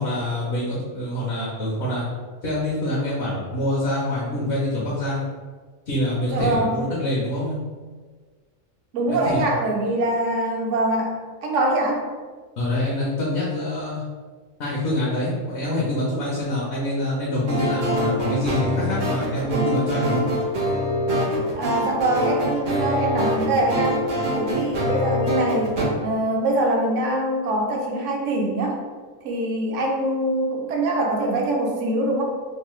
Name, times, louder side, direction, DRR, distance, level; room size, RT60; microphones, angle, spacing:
voice 1, 0.0-2.1 2.4-5.3 5.9-7.6 9.1-9.5 12.6-14.0 14.6-20.2, left 1 dB, 60° left, -6 dB, 0.9 m, -26 dB
voice 2, 6.3-6.8 8.9-11.2 11.4-12.0 21.5-24.0 24.4-28.8 29.2-32.2, right 1 dB, 70° right, 0 dB, 0.9 m, -23 dB
sound 1, 17.5-25.8, equal, 55° right, 0.5 m, -24 dB
3.1 x 2.0 x 3.0 m, 1.4 s
omnidirectional pair, 1.4 m